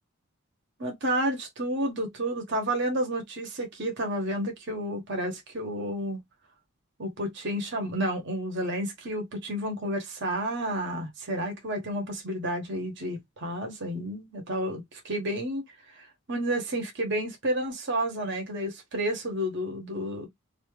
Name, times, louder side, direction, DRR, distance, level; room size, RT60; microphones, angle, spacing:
voice 1, 0.8-6.2 7.0-20.3, right 1 dB, 55° right, 1.0 m, -31 dB
2.7 x 2.3 x 3.1 m
head